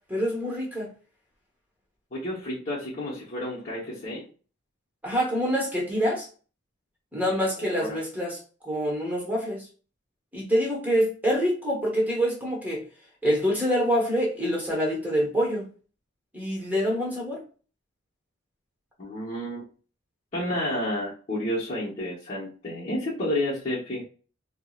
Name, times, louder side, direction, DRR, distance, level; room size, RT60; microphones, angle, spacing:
voice 1, 0.1-0.9 5.0-6.3 7.1-9.7 10.3-12.8 13.2-15.7 16.3-17.4, equal, 10° right, 1.0 m, -26 dB
voice 2, 2.1-4.3 7.6-8.0 19.0-19.6 20.3-24.0, left 1 dB, 35° left, 0.9 m, -30 dB
4.5 x 2.1 x 2.3 m
head